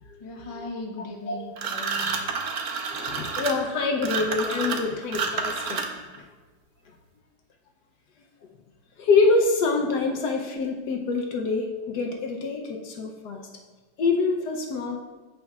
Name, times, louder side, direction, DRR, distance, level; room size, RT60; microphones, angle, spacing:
voice 1, 0.2-2.2 9.9-10.0, left 2 dB, 25° left, 0 dB, 0.7 m, -38 dB
sound 1, 1.6-6.2, right 5 dB, 60° right, 1.1 m, -29 dB
voice 2, 2.9-5.8 6.2-6.3 9.0-13.4 14.0-15.0, left 4 dB, 70° left, 2 dB, 1.3 m, -25 dB
14.5 x 5.3 x 2.4 m, 1.3 s
omnidirectional pair, 2.0 m